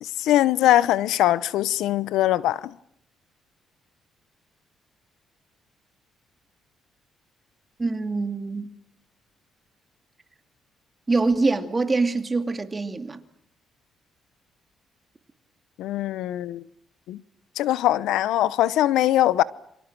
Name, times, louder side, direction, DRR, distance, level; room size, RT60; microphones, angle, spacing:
voice 1, 0.0-2.7 15.8-16.6 17.1-17.2 17.6-19.4, left 13 dB, 90° left, 0.9 m, -22 dB
voice 2, 7.8-8.7 11.1-13.2, right 3 dB, 25° right, 2.6 m, -24 dB
28.5 x 25.0 x 6.2 m
cardioid pair, 90°, 0 cm